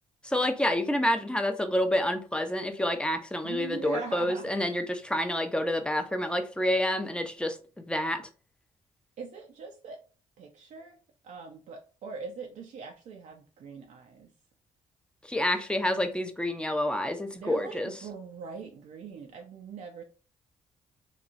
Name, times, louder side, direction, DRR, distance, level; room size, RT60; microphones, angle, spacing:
voice 1, 0.2-8.2 15.2-17.9, left 1 dB, 5° left, 0.5 m, -28 dB
voice 2, 3.4-4.5 9.2-10.0 10.4-11.0 11.2-14.3 17.3-20.0, right 5 dB, 65° right, 0.5 m, -41 dB
3.0 x 2.3 x 2.5 m
supercardioid pair, 65°, 13 cm